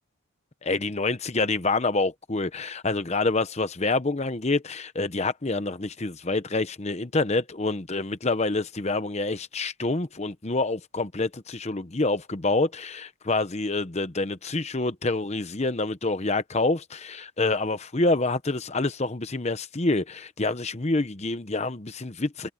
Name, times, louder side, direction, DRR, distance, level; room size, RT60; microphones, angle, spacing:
voice 1, 0.6-22.5, left 3 dB, 30° left, 0.8 m, -27 dB
head